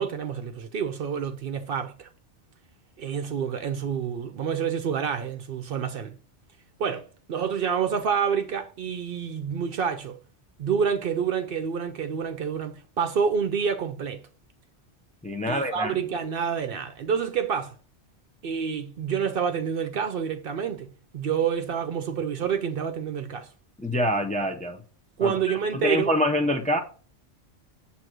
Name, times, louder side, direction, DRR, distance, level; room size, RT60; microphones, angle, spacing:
voice 1, 0.0-2.1 3.0-6.2 6.8-10.2 10.6-14.2 15.5-17.7 18.4-23.5 25.2-26.1, right 7 dB, 60° right, 0.7 m, -28 dB
voice 2, 15.2-15.9 23.8-24.8 25.2-25.3 25.7-26.8, equal, 10° left, 0.5 m, -25 dB
7.7 x 2.9 x 5.9 m
omnidirectional pair, 1.2 m